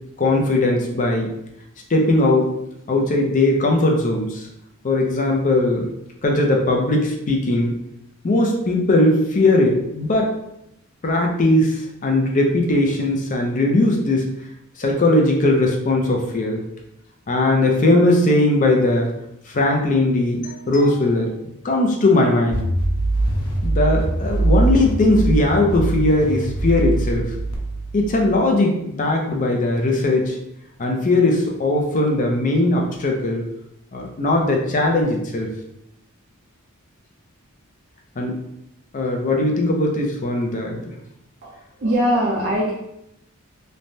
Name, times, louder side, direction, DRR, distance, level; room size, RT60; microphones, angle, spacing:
voice 1, 0.2-1.3 1.9-2.5 2.9-4.5 4.8-5.9 6.2-7.7 8.2-10.3 11.0-14.3 14.8-16.6 17.3-19.1 19.5-21.3 21.6-22.6 23.6-27.2 27.9-30.4 30.8-33.5 33.9-35.5 38.2-38.4 38.9-40.8, left 2 dB, 35° left, 1 dB, 0.5 m, -19 dB
sound 1, 22.5-28.4, right 2 dB, 85° left, 0.6 m, -22 dB
voice 2, 41.4-42.7, equal, 50° right, -5 dB, 0.5 m, -21 dB
3.2 x 2.1 x 2.6 m, 0.81 s
head